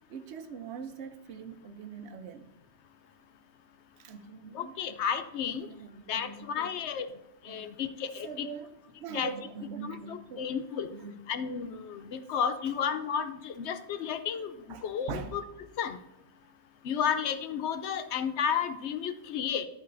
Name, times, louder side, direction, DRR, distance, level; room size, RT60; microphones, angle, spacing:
voice 1, 0.1-2.5 4.0-4.9 5.6-6.9 7.5-7.8 8.2-8.7 9.0-10.4 10.9-11.2 14.7-15.4, right 6 dB, 75° right, 0.9 m, -42 dB
voice 2, 4.5-5.7 6.1-7.1 7.4-8.5 9.1-9.3 9.8-10.9 11.3-14.5 14.8-15.4 15.8-16.0 16.8-19.7, left 7 dB, 80° left, 0.9 m, -32 dB
11.0 x 8.4 x 2.6 m
omnidirectional pair, 1.1 m